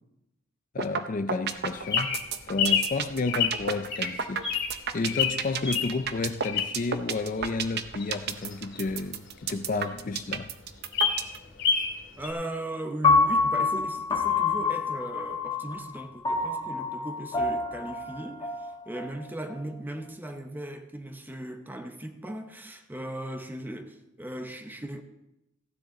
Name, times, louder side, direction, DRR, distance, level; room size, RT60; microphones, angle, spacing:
voice 1, 0.7-2.2 2.5-4.5 4.9-10.5, left 3 dB, 40° left, 0.4 m, -31 dB
sound 1, 0.8-1.0 1.3-11.4, right 7 dB, 50° right, 0.7 m, -30 dB
Bird vocalization bird call bird song, 1.5-7.0 7.4-9.6 10.0-10.1 10.3-10.4 10.7-12.0 12.2-12.3, left 6 dB, 60° left, 2.3 m, -28 dB
voice 2, 12.2-25.0, right 1 dB, 10° right, 0.8 m, -38 dB
Piano, 13.0-19.2, left 4 dB, 20° left, 1.3 m, -27 dB
15.0 x 9.9 x 3.8 m
head